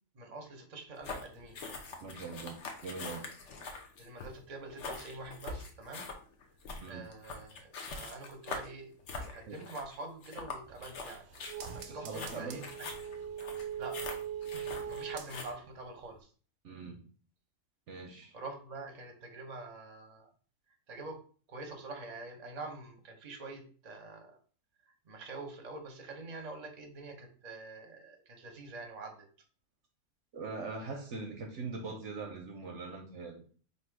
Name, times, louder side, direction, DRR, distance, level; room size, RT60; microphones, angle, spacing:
voice 1, 0.1-1.6 4.0-6.1 6.9-11.2 11.7-12.9 13.8-14.0 14.5-16.3 18.3-20.3 20.9-21.2 21.5-24.4 25.0-29.3, right 3 dB, 35° right, 4 dB, 0.7 m, -45 dB
sound 1, 1.0-15.5, left 3 dB, 60° left, 1.0 m, -44 dB
voice 2, 2.0-2.6 2.8-3.3 6.8-7.1 9.5-9.6 11.9-12.7 16.6-17.0 17.9-18.3 30.3-33.4, right 4 dB, 65° right, 3 dB, 0.9 m, -42 dB
sound 2, 10.6-15.7 16.1-16.2, right 8 dB, 90° right, 1.1 m, -42 dB
3.5 x 2.7 x 4.6 m, 0.42 s
omnidirectional pair, 1.5 m